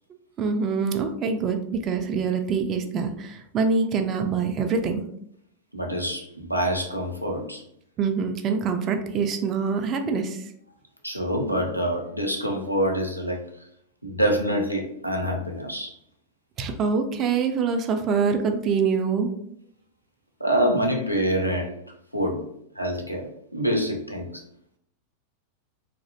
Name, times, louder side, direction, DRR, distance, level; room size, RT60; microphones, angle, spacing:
voice 1, 0.4-5.0 8.0-10.4 16.6-19.3, right 5 dB, 30° right, 5 dB, 0.3 m, -25 dB
voice 2, 5.7-7.6 11.0-13.4 14.0-16.0 20.4-21.7 22.1-22.5 22.8-24.4, equal, 90° left, 2 dB, 0.4 m, -26 dB
2.5 x 2.0 x 2.7 m, 0.70 s
figure-of-eight pair, 90°, 0 cm